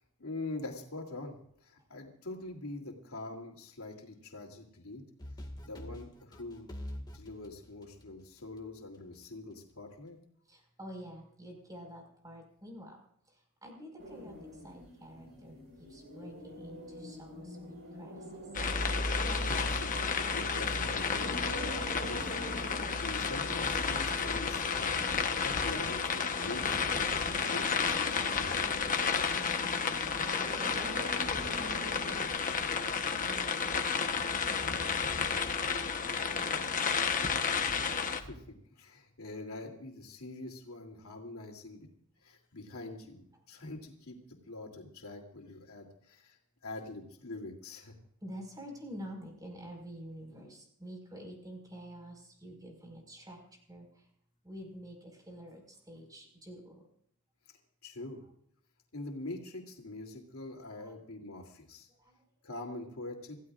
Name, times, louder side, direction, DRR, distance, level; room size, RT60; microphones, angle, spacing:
voice 1, 0.0-5.0 5.6-6.7 7.1-10.2 19.3-24.8 25.4-28.6 38.1-41.9 42.2-46.4 46.6-47.9 57.8-58.3 58.9-61.9 62.4-63.4, left 2 dB, 75° left, 1 dB, 3.1 m, -44 dB
sound 1, 5.2-8.6, left 1 dB, 20° left, 2.1 m, -44 dB
voice 2, 10.5-13.0 13.3-18.5 29.2-34.1 34.7-35.0 35.3-35.9 36.3-36.8 48.2-54.1 54.4-56.8 60.8-61.0 61.9-62.3, equal, 15° right, 2 dB, 5.2 m, -49 dB
sound 2, 14.0-32.3, equal, 50° right, 5.3 m, -45 dB
sound 3, 18.5-38.2, left 5 dB, 40° left, 1.1 m, -32 dB
27.0 x 16.0 x 2.5 m, 0.67 s
head